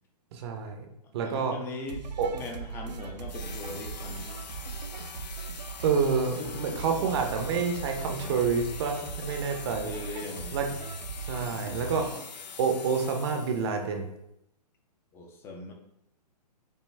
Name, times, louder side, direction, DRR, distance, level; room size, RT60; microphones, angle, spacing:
voice 1, 0.3-0.9 1.1-1.5 2.2-2.3 5.8-9.9 10.5-10.7 11.3-12.0 12.6-14.1, right 5 dB, 40° right, 4 dB, 0.6 m, -28 dB
voice 2, 1.0-4.4 6.4-7.1 7.9-8.4 9.6-10.6 11.3-11.4 11.9-12.1 15.1-15.7, left 2 dB, 10° left, 3 dB, 0.4 m, -41 dB
sound 1, 1.9-12.5, right 5 dB, 85° right, 0.6 m, -39 dB
sound 2, 3.3-13.8, left 6 dB, 85° left, 0.4 m, -44 dB
5.4 x 2.2 x 3.3 m, 0.79 s
hypercardioid pair, 130°, 21 cm